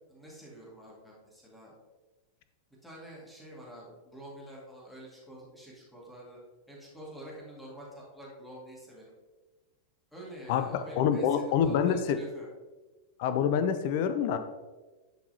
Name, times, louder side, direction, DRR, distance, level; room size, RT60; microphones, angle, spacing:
voice 1, 0.1-1.7 2.8-6.4 6.7-9.0 10.1-12.5, right 1 dB, 5° left, -5 dB, 2.2 m, -47 dB
voice 2, 10.5-12.2 13.2-14.4, left 8 dB, 50° left, 10 dB, 0.5 m, -26 dB
10.5 x 4.7 x 2.9 m, 1.2 s
figure-of-eight pair, 90°, 0 cm